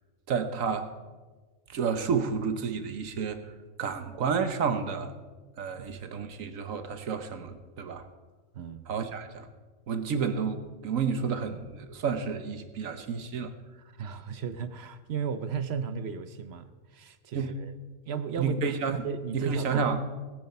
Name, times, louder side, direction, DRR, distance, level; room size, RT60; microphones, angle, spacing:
voice 1, 0.3-0.9 1.7-3.5 3.8-5.1 5.6-8.0 8.9-9.5 9.9-13.5 17.3-17.5 18.4-19.0 19.3-20.0, right 6 dB, 85° right, 9 dB, 1.4 m, -30 dB
voice 2, 8.5-8.9 14.0-17.7 18.1-18.6 19.0-19.9, right 7 dB, 60° right, 12 dB, 0.8 m, -35 dB
19.0 x 9.5 x 4.4 m, 1.3 s
omnidirectional pair, 1.4 m